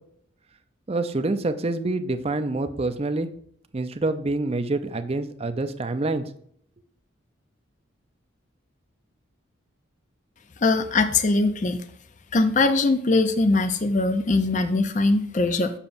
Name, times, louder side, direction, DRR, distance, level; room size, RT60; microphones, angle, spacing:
voice 1, 0.9-3.3 3.7-6.2, right 2 dB, 30° right, 9 dB, 0.5 m, -26 dB
voice 2, 10.6-11.8 12.3-15.7, left 3 dB, 35° left, 9 dB, 0.4 m, -21 dB
7.2 x 6.7 x 2.6 m, 0.64 s
head